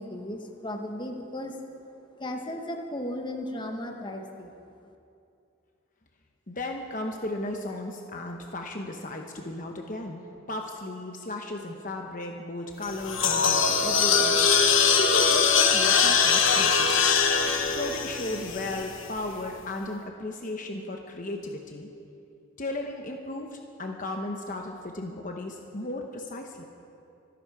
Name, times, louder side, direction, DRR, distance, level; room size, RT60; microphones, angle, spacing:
voice 1, 0.0-1.8 2.2-4.6, left 1 dB, 25° left, 3 dB, 1.2 m, -35 dB
voice 2, 6.5-10.2 10.5-17.1 17.7-21.9 22.6-26.6, left 2 dB, 40° left, 3 dB, 1.0 m, -35 dB
sound 1, 12.8-19.1, left 5 dB, 75° left, 1.2 m, -22 dB
25.5 x 11.0 x 4.9 m, 2.6 s
head